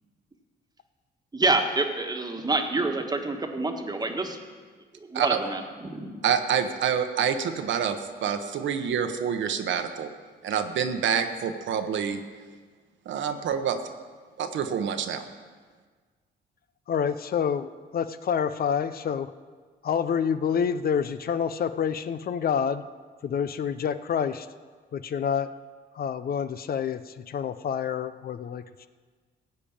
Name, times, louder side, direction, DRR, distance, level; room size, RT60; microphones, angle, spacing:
voice 1, 1.3-4.4 5.2-6.2, right 2 dB, 20° right, 5 dB, 1.4 m, -27 dB
voice 2, 6.2-10.1 10.4-12.2 13.0-13.8 14.4-15.2, right 7 dB, 70° right, 7 dB, 1.0 m, -27 dB
voice 3, 16.9-19.3 19.8-22.8 23.2-24.5 24.9-25.5 25.9-28.9, left 7 dB, 50° left, 12 dB, 0.5 m, -28 dB
15.0 x 5.2 x 8.7 m, 1.5 s
cardioid pair, 90°, 20 cm